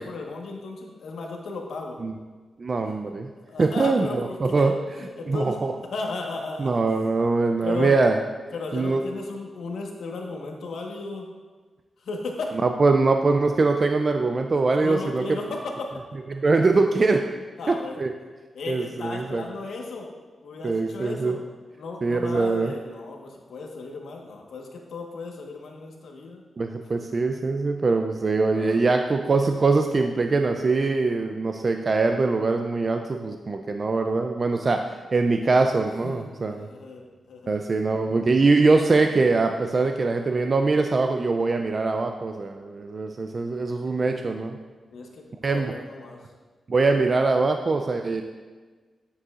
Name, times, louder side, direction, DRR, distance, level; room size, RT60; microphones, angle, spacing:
voice 1, 0.0-2.0 3.4-5.6 5.9-6.8 7.6-8.0 8.5-11.3 12.0-12.5 14.8-15.9 17.6-18.1 18.5-20.1 20.4-21.4 21.8-26.4 28.5-28.8 36.0-37.5 44.9-46.2, left 3 dB, 85° left, 0 dB, 1.2 m, -35 dB
voice 2, 2.6-3.3 3.6-4.7 5.3-5.7 6.6-8.2 8.7-9.0 12.6-15.3 16.3-17.2 17.7-18.1 18.7-19.4 20.6-21.4 22.0-22.7 26.6-34.8 35.1-36.7 37.5-44.6 45.4-45.7 46.7-48.2, right 3 dB, 35° right, 5 dB, 0.4 m, -22 dB
10.0 x 7.9 x 2.4 m, 1.4 s
wide cardioid pair, 135°, 0 cm